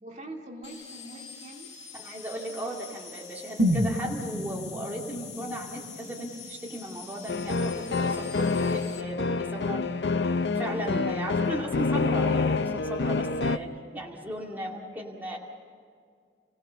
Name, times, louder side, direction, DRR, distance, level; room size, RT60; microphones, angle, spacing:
voice 1, 0.0-1.7 10.6-11.1, right 1 dB, 40° right, 0 dB, 2.4 m, -41 dB
sound 1, 0.6-9.0, left 7 dB, 35° left, 2.5 m, -45 dB
voice 2, 1.9-9.9 10.5-15.4, right 1 dB, 10° right, -3 dB, 2.4 m, -36 dB
sound 2, 3.6-7.6 7.9-8.0, equal, 90° right, 3.8 m, -31 dB
sound 3, 7.3-13.6, left 4 dB, 65° left, 0.7 m, -27 dB
30.0 x 17.5 x 7.1 m, 2.2 s
head